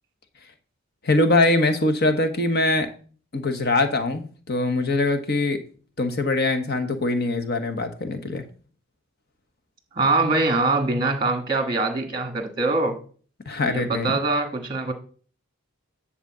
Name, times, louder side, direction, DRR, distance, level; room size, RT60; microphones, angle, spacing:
voice 1, 1.0-2.9 3.3-5.6 6.0-8.4 13.4-14.2, left 2 dB, 45° left, 8 dB, 1.3 m, -22 dB
voice 2, 9.9-13.0 13.6-14.9, right 3 dB, 20° right, 5 dB, 1.6 m, -23 dB
10.5 x 4.3 x 7.4 m, 0.42 s
head